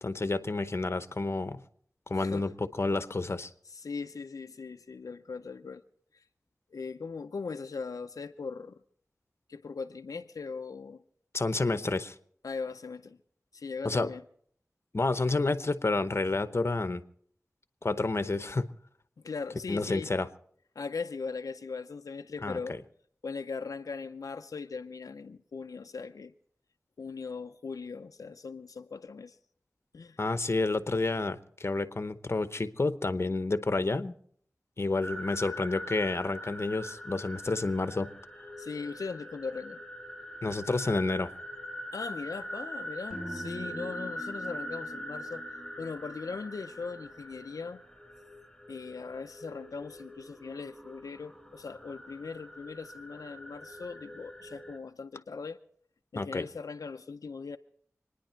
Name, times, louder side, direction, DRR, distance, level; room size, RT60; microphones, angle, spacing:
voice 1, 0.0-1.6 2.1-3.5 11.3-12.1 13.8-14.1 14.9-17.0 17.8-18.7 19.7-20.3 22.4-22.6 30.2-34.1 34.8-38.1 40.4-41.3 56.2-56.5, left 3 dB, 50° left, 0.9 m, -29 dB
voice 2, 2.1-2.5 3.7-5.8 6.1-6.2 6.7-8.8 9.5-11.0 12.4-13.2 13.5-14.2 19.2-20.1 20.8-22.8 23.2-26.3 27.0-29.4 29.9-30.2 38.6-39.8 41.9-45.5 45.8-47.8 48.7-55.6 56.1-57.6, left 4 dB, 90° left, 0.5 m, -39 dB
sound 1, 35.0-54.8, equal, 5° left, 4.1 m, -43 dB
sound 2, 43.1-47.3, equal, 15° right, 2.0 m, -45 dB
26.0 x 10.0 x 4.4 m
wide cardioid pair, 55°, 6 cm